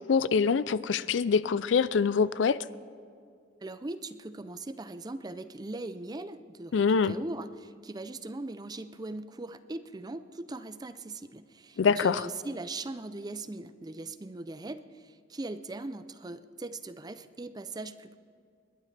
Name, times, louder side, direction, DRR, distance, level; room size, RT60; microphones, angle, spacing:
voice 1, 0.1-2.6 6.7-7.1 11.8-12.2, left 5 dB, 70° left, 0.4 m, -24 dB
voice 2, 3.6-18.2, right 2 dB, 20° right, 0.5 m, -40 dB
28.5 x 11.0 x 3.3 m
head